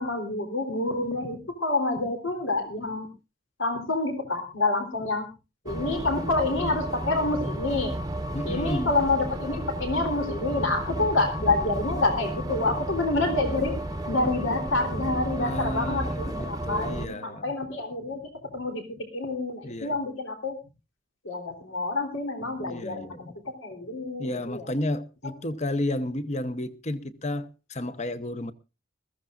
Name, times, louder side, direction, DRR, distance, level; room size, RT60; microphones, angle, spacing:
voice 1, 0.0-3.1 3.6-5.3 5.6-8.0 8.4-13.8 14.1-18.2 18.5-18.8 19.1-20.5 21.2-24.7, left 2 dB, 80° left, 3.4 m, -28 dB
sound 1, 5.7-17.1, right 1 dB, 20° right, 0.9 m, -32 dB
voice 2, 8.3-8.9 15.4-17.5 19.6-20.0 22.6-23.3 24.2-28.5, left 1 dB, 35° left, 1.0 m, -32 dB
21.0 x 15.0 x 2.5 m
head